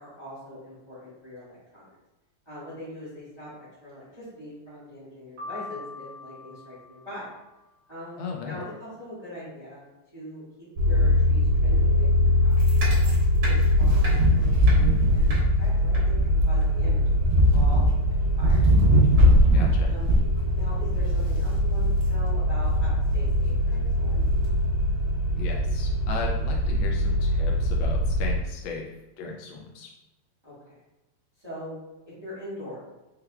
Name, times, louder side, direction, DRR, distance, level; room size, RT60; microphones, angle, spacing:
voice 1, 0.0-1.9 2.4-7.3 7.9-9.8 10.1-10.4 10.8-13.1 13.5-15.3 15.6-17.8 18.4-18.6 19.8-20.1 20.5-24.2 30.4-30.8 31.4-31.8 32.2-32.8, equal, 15° right, -11 dB, 1.1 m, -42 dB
Piano, 5.4-7.5, left 3 dB, 65° right, 1.9 m, -42 dB
voice 2, 8.2-8.6 19.5-19.9 25.3-28.9 29.2-29.9, left 4 dB, 75° left, 0 dB, 1.3 m, -36 dB
sound 1, 10.8-28.4, equal, 80° right, 1.9 m, -21 dB
4.7 x 3.2 x 2.3 m, 1.0 s
omnidirectional pair, 2.2 m